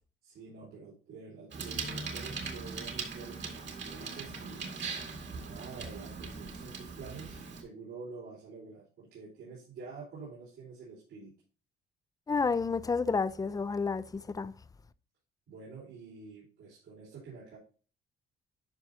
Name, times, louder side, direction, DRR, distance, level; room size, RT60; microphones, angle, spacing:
voice 1, 0.2-4.8 5.3-11.3 15.5-17.6, right 4 dB, 85° right, 4.5 m, -48 dB
Bicycle, 1.5-7.6, right 4 dB, 65° right, 2.3 m, -40 dB
voice 2, 12.3-14.5, left 4 dB, 20° left, 0.5 m, -30 dB
11.5 x 5.4 x 2.8 m
cardioid pair, 90°, 20 cm